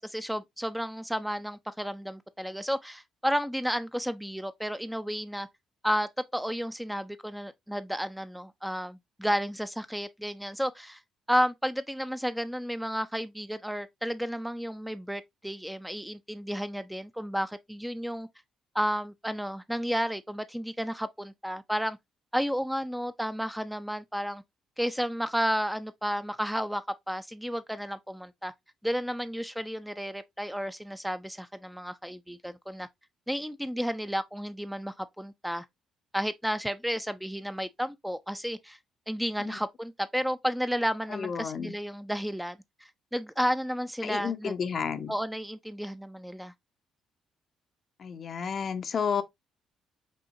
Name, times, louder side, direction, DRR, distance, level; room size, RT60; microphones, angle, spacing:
voice 1, 0.0-5.5 5.8-11.0 11.3-18.3 18.7-22.0 22.3-24.4 24.8-28.5 28.8-32.9 33.3-35.7 36.1-38.8 39.1-44.6 45.1-46.5, equal, 5° right, 0.4 m, -32 dB
voice 2, 41.1-41.7 44.0-45.1 48.0-49.2, left 6 dB, 50° left, 0.6 m, -31 dB
5.3 x 2.8 x 2.5 m
hypercardioid pair, 50°, 0 cm